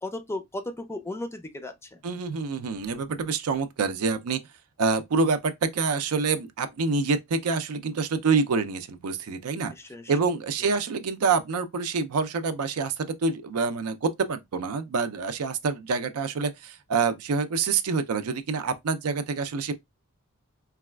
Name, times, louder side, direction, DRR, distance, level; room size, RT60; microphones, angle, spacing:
voice 1, 0.0-2.0 9.7-10.1, left 2 dB, 10° left, 0.4 m, -35 dB
voice 2, 2.0-4.4 4.8-9.7 10.1-19.7, right 4 dB, 90° right, 0.5 m, -27 dB
4.0 x 2.3 x 2.2 m
head